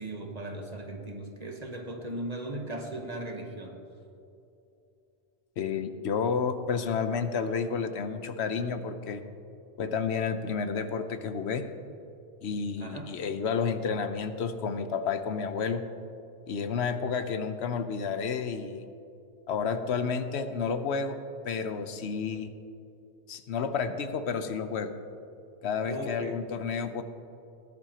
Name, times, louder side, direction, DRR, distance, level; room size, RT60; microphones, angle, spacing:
voice 1, 0.0-3.8 12.8-13.1 25.9-26.5, right 1 dB, 40° right, 3 dB, 1.2 m, -38 dB
voice 2, 5.6-9.2 9.8-11.6 12.4-15.8 16.5-18.8 19.5-21.2 21.4-22.5 23.3-24.9 25.6-27.0, left 6 dB, 80° left, 9 dB, 1.0 m, -30 dB
18.5 x 11.0 x 2.9 m, 2.7 s
omnidirectional pair, 1.1 m